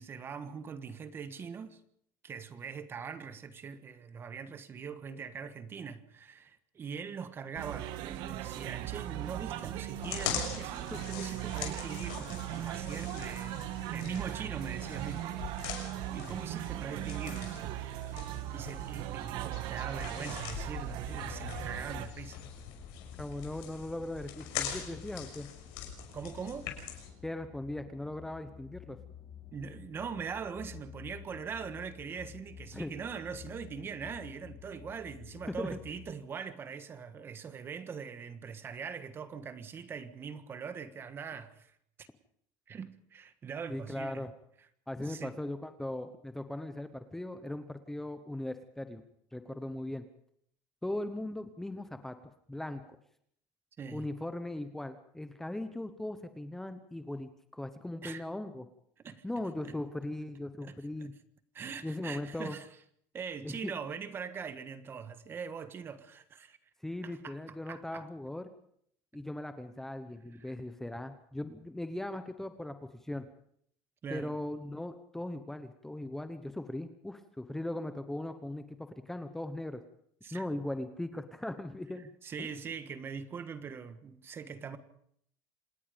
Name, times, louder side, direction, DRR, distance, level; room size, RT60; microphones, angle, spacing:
voice 1, 0.0-1.8 2.2-15.3 16.1-17.6 18.5-22.4 26.1-26.7 29.5-42.1 42.7-44.3 45.0-45.4 53.8-54.1 58.0-58.2 59.0-59.2 59.6-59.7 60.6-61.1 61.5-62.7 63.1-66.6 67.0-67.4 67.7-68.1 70.4-70.5 74.0-74.3 80.2-80.4 82.2-84.8, right 6 dB, 25° right, 1.5 m, -42 dB
sound 1, 7.6-22.1, right 14 dB, 60° right, 1.6 m, -38 dB
sound 2, 10.0-27.1, left 9 dB, 75° left, 6.2 m, -43 dB
sound 3, 21.1-36.1, left 9 dB, 30° left, 6.1 m, -50 dB
voice 2, 23.2-25.5 27.2-29.0 32.7-32.9 35.6-35.7 43.7-44.3 44.9-49.0 49.3-50.0 50.8-53.0 53.9-58.7 59.2-61.1 61.8-62.6 63.4-63.7 66.8-68.5 69.1-73.3 74.1-79.8 80.3-82.1 82.4-82.5, left 1 dB, 5° left, 1.0 m, -39 dB
27.0 x 19.5 x 5.2 m
cardioid pair, 150°, 8 cm